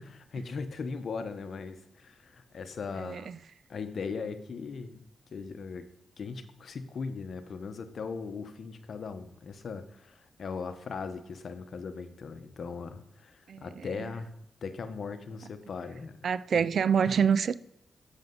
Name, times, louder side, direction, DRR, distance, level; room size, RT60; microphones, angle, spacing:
voice 1, 0.0-3.3 3.7-5.0 5.3-5.9 6.2-14.3 14.6-16.2 16.5-16.7 17.0-17.1, left 5 dB, 65° left, 0.8 m, -39 dB
voice 2, 3.0-3.4 13.5-13.7 14.0-14.1 16.2-17.6, right 7 dB, 65° right, 0.3 m, -26 dB
7.6 x 6.4 x 3.7 m
supercardioid pair, 55°, 0 cm